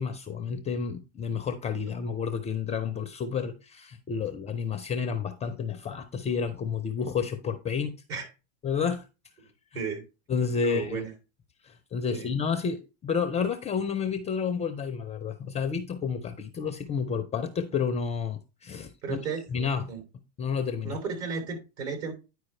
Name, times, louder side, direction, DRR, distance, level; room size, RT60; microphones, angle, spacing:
voice 1, 0.0-7.9 8.6-9.1 10.3-11.1 11.6-19.2 19.5-19.9 20.4-21.0, left 6 dB, 15° left, 0.4 m, -30 dB
voice 2, 10.6-11.1 12.1-12.3 19.0-19.4 19.9-20.0 20.8-22.1, right 5 dB, 55° right, 3.1 m, -33 dB
9.8 x 4.7 x 3.2 m
hypercardioid pair, 115°, 40 cm